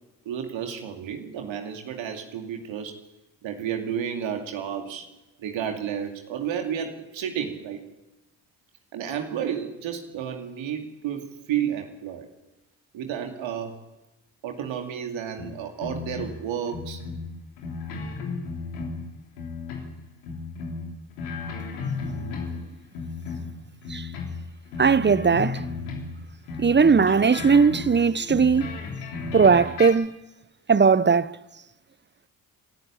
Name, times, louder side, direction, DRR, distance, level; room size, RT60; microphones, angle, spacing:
voice 1, 0.2-3.0 3.4-5.1 5.4-7.8 8.9-12.3 12.9-13.8 14.4-17.0, right 8 dB, 70° right, 2.6 m, -31 dB
sound 1, 15.4-16.4 16.7-19.1 19.4-19.9 20.2-22.7 22.9-26.2 26.5-29.9, left 4 dB, 85° left, 3.3 m, -34 dB
voice 2, 24.8-25.6 26.6-28.7 29.3-30.1 30.7-31.3, right 5 dB, 20° right, 0.9 m, -18 dB
27.5 x 13.0 x 8.8 m
hypercardioid pair, 40°, 48 cm